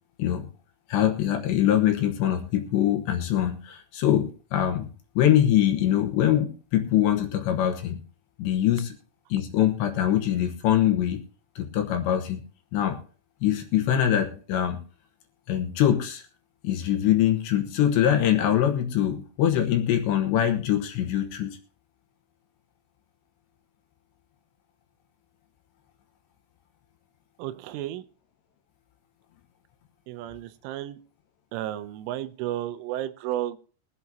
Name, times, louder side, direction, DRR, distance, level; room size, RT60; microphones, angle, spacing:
voice 1, 0.9-4.9 5.2-8.0 8.4-8.9 9.3-11.2 11.6-12.4 12.7-13.0 13.4-14.8 15.5-16.2 16.6-21.6, left 11 dB, 75° left, 4 dB, 3.1 m, -23 dB
voice 2, 27.4-28.0 30.1-31.0 31.5-33.6, right 13 dB, 85° right, 12 dB, 3.2 m, -32 dB
22.5 x 8.4 x 2.8 m, 0.39 s
omnidirectional pair, 5.7 m